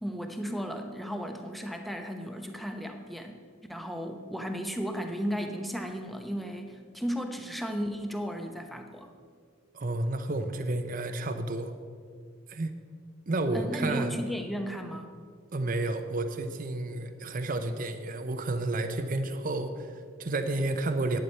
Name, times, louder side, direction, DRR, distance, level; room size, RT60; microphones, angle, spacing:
voice 1, 0.0-3.4 3.7-9.1 13.5-15.1, equal, ahead, 4 dB, 0.8 m, -35 dB
voice 2, 9.7-11.7 12.5-12.7 13.3-14.2 15.5-21.2, right 2 dB, 40° right, 8 dB, 0.6 m, -31 dB
11.0 x 8.5 x 5.5 m, 2.1 s
head